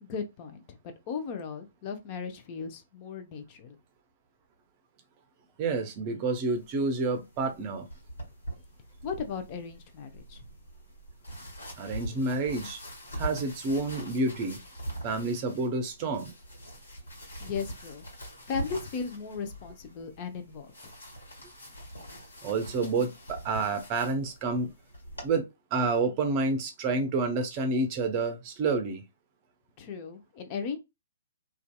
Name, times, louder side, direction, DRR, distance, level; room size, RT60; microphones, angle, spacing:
voice 1, 0.0-0.6 1.1-3.8 9.0-10.4 17.4-18.0 18.5-20.7 29.8-30.8, left 5 dB, 35° left, 0.6 m, -36 dB
voice 2, 5.6-7.9 11.8-12.8 13.2-14.6 15.0-16.3 22.4-24.7 25.2-25.4 25.7-29.0, right 3 dB, 35° right, 0.6 m, -29 dB
sound 1, 6.5-25.3, equal, 75° left, 1.3 m, -43 dB
2.6 x 2.4 x 2.2 m
figure-of-eight pair, 125°, 0 cm